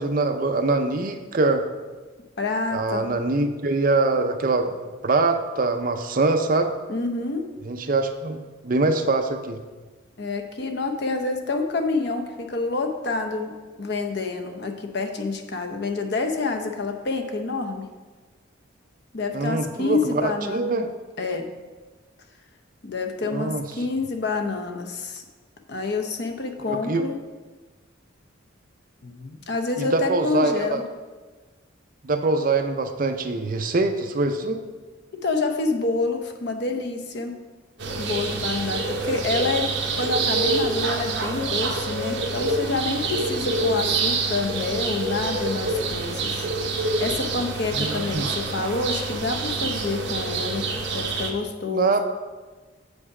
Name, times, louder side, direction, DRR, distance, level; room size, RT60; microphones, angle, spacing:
voice 1, 0.0-1.6 2.7-4.7 5.0-6.7 7.6-9.6 19.3-20.9 23.3-23.6 26.7-27.0 29.8-30.8 32.0-34.6 47.7-48.3 51.7-52.0, right 3 dB, 45° right, 6 dB, 0.5 m, -23 dB
voice 2, 2.4-3.1 6.9-7.5 10.2-17.9 19.1-20.7 21.2-21.5 22.8-25.2 25.7-27.1 29.0-30.8 35.2-37.3 38.0-46.5 46.7-50.7 50.9-52.0, left 3 dB, 55° left, 4 dB, 0.7 m, -28 dB
sound 1, 37.8-51.3, right 3 dB, 60° right, 0.8 m, -26 dB
7.2 x 5.3 x 4.8 m, 1.3 s
head